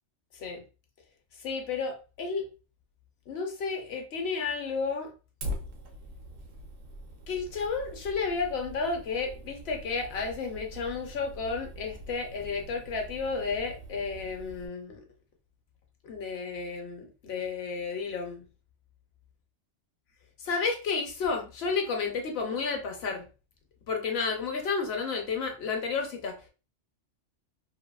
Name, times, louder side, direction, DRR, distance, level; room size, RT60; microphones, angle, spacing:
voice 1, 1.4-2.5 3.3-5.1 7.3-15.0 16.0-18.5 20.4-23.3 23.9-26.5, left 4 dB, 60° left, 0.8 m, -32 dB
Fire, 5.4-14.7, equal, 75° right, 1.0 m, -43 dB
2.7 x 2.6 x 2.2 m
omnidirectional pair, 1.3 m